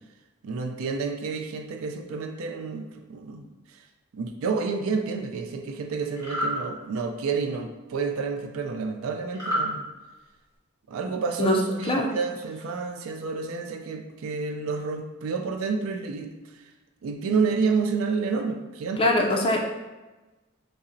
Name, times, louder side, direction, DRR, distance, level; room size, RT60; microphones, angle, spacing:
voice 1, 0.4-3.4 3.7-3.8 4.1-9.9 10.9-16.3 17.0-19.0, right 4 dB, 70° right, 5 dB, 0.4 m, -29 dB
sound 1, 6.2-6.5 9.3-9.7, equal, 15° right, 1.4 m, -27 dB
voice 2, 11.4-12.1 19.0-19.6, left 1 dB, 25° left, 1 dB, 0.4 m, -23 dB
5.2 x 2.0 x 2.6 m, 1.1 s
head